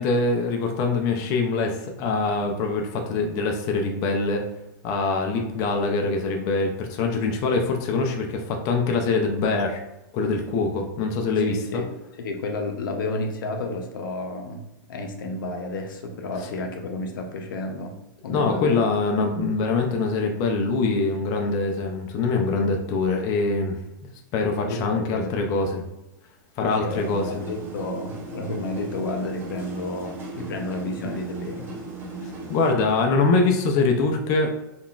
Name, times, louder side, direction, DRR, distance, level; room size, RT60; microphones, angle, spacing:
voice 1, 0.0-4.4 4.8-9.8 10.1-11.8 18.3-23.8 24.3-25.8 26.6-27.4 32.2-34.5, left 3 dB, 35° left, 2 dB, 0.4 m, -24 dB
voice 2, 11.4-18.0 18.2-18.8 24.7-25.3 26.6-31.7 32.1-32.3, left 2 dB, 80° left, 3 dB, 0.6 m, -31 dB
sound 1, 26.9-32.7, right 2 dB, 20° right, 0.7 m, -37 dB
3.7 x 2.3 x 2.3 m, 0.92 s
supercardioid pair, 145°, 11 cm